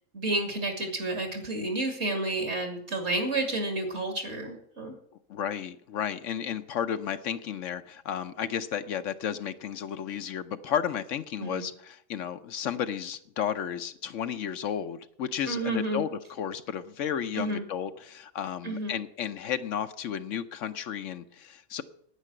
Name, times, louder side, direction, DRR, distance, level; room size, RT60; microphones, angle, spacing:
voice 1, 0.1-5.0 11.4-11.7 15.5-16.0 17.3-17.7 18.6-19.0, right 2 dB, 55° right, 4 dB, 2.8 m, -30 dB
voice 2, 5.3-21.8, left 8 dB, 70° left, 10 dB, 1.0 m, -33 dB
9.8 x 9.3 x 7.7 m, 0.68 s
omnidirectional pair, 1.4 m